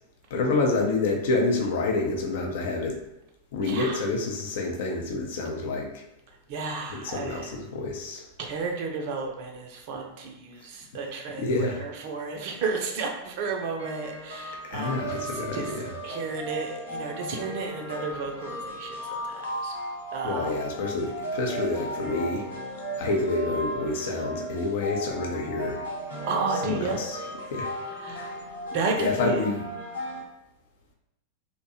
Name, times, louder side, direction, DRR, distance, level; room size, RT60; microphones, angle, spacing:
voice 1, 0.3-3.0 3.5-6.0 6.9-8.3 11.4-11.8 14.6-15.9 20.2-22.5 22.9-25.8 26.6-27.2 27.5-27.7 28.1-28.4 29.0-29.6, left 3 dB, 55° left, 1 dB, 0.5 m, -28 dB
voice 2, 3.7-4.0 6.5-7.5 8.4-15.7 16.0-19.7 20.1-20.5 26.3-27.0 28.0-28.3 28.7-29.4, right 4 dB, 45° right, 2 dB, 0.4 m, -32 dB
sound 1, 13.8-30.2, equal, 75° left, 0.8 m, -36 dB
2.6 x 2.2 x 2.7 m, 0.87 s
figure-of-eight pair, 90°, 0 cm